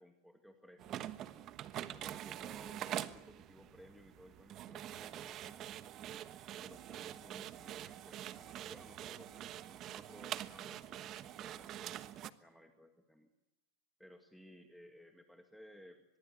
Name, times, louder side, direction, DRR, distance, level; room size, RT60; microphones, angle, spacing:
voice 1, 0.0-1.5 1.9-5.8 6.6-13.3 14.0-16.0, equal, ahead, 5 dB, 2.0 m, -59 dB
sound 1, 0.8-12.3, right 12 dB, 40° right, 1.2 m, -45 dB
24.5 x 22.0 x 8.1 m, 0.93 s
supercardioid pair, 140°, 0 cm